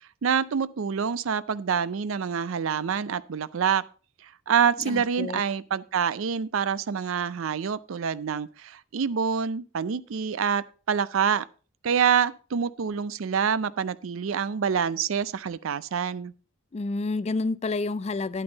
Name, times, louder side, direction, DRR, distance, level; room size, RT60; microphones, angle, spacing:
voice 1, 0.2-3.8 4.5-11.5 11.8-16.3, right 7 dB, 65° right, 0.5 m, -26 dB
voice 2, 4.8-5.4 16.7-18.4, left 3 dB, 30° left, 0.4 m, -29 dB
9.8 x 8.8 x 3.9 m
head